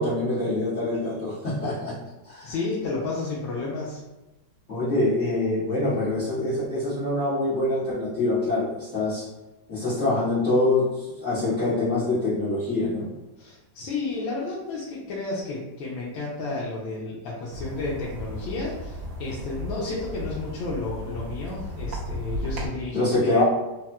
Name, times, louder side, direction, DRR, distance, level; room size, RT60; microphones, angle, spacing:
voice 1, 0.0-1.9 2.2-2.5 4.7-9.3 9.7-13.1 22.9-23.4, left 2 dB, 50° left, -13 dB, 1.4 m, -25 dB
voice 2, 2.4-4.0 13.4-23.4, left 3 dB, 85° left, -7 dB, 1.4 m, -32 dB
sound 1, 17.5-22.7, left 1 dB, 60° right, 0.9 m, -34 dB
4.0 x 2.0 x 2.2 m, 1.0 s
omnidirectional pair, 2.0 m